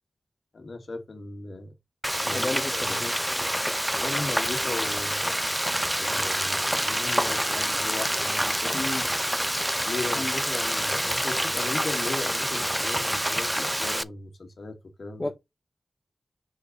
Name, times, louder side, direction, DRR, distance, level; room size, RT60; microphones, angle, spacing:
voice 1, 0.5-1.7 2.2-3.0 3.9-5.3 6.0-8.8 9.8-15.3, left 3 dB, 75° left, 1.9 m, -37 dB
Frying (food), 2.0-14.0, equal, 5° right, 0.5 m, -27 dB
voice 2, 2.3-3.1 8.7-9.1 10.1-10.4 15.2-15.3, left 2 dB, 40° left, 1.3 m, -32 dB
6.3 x 3.8 x 4.8 m
cardioid pair, 50°, 0 cm